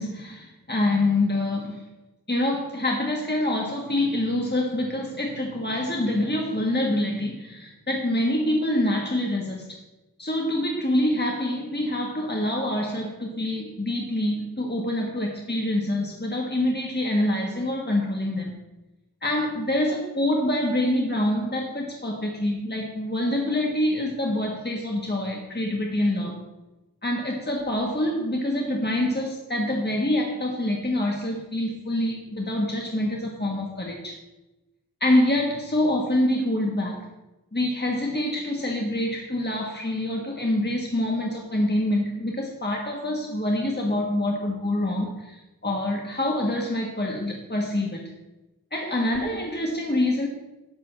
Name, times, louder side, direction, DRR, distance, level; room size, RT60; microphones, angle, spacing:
voice 1, 0.0-1.8 2.3-9.8 10.2-18.5 19.2-26.4 27.0-34.2 35.0-37.1 37.5-48.0 48.7-50.3, left 1 dB, 30° left, -1 dB, 1.6 m, -26 dB
11.5 x 4.0 x 7.4 m, 1.0 s
wide cardioid pair, 45°, 33 cm